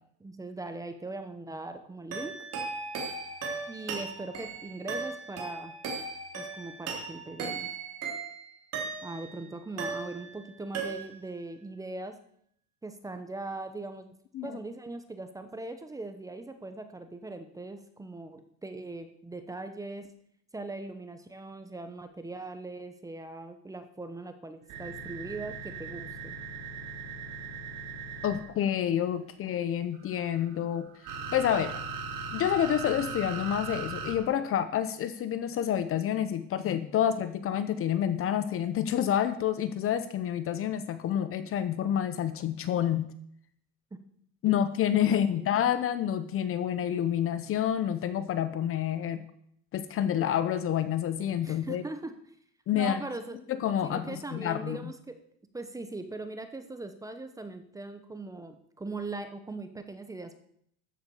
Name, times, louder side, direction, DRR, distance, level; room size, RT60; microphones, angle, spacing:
voice 1, 0.2-2.5 3.7-5.7 6.3-7.7 9.0-12.2 12.8-14.1 14.4-20.1 20.5-26.4 43.9-44.0 44.5-44.6 45.3-45.5 51.4-52.1 52.7-53.4 53.9-55.2 55.5-60.4, right 2 dB, 10° right, 8 dB, 0.9 m, -40 dB
sound 1, 2.1-9.4 9.8-10.5 10.7-11.4, right 4 dB, 40° right, 3.6 m, -37 dB
sound 2, 24.7-28.5 29.9-34.1, right 4 dB, 55° right, 3.8 m, -38 dB
voice 2, 28.2-30.9 31.3-31.8 32.3-43.1 44.4-49.3 49.7-51.8 52.7-53.0 53.5-54.9, left 10 dB, 35° left, 12 dB, 0.8 m, -28 dB
13.5 x 7.8 x 7.1 m, 0.68 s
cardioid pair, 155°, 40 cm